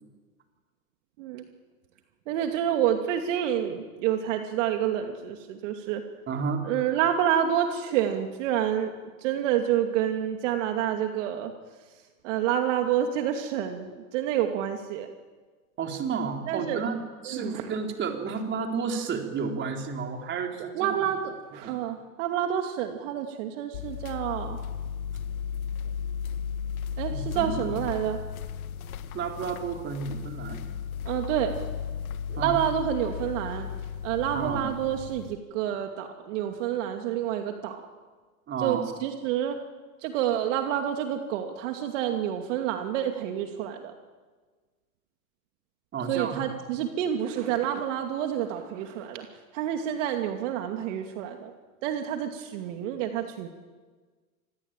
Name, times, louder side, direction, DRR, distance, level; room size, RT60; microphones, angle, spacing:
voice 1, 1.2-1.5 2.3-6.0 6.6-8.9 9.2-11.5 12.2-15.1 16.5-16.8 17.3-17.6 20.7-24.6 27.0-28.2 31.0-31.5 32.3-33.7 34.0-37.8 38.6-39.6 40.0-43.9 46.1-49.3 49.5-51.5 51.8-53.5, right 10 dB, 55° right, 5 dB, 2.6 m, -28 dB
voice 2, 6.3-6.6 15.8-21.1 21.6-21.7 27.1-27.8 29.1-30.6 32.4-32.6 34.3-34.7 38.5-38.8 45.9-46.4, right 5 dB, 25° right, 3 dB, 4.0 m, -31 dB
sound 1, 23.7-35.3, left 7 dB, 65° left, 1.8 m, -35 dB
27.0 x 21.5 x 9.1 m, 1.4 s
hypercardioid pair, 125°, 45 cm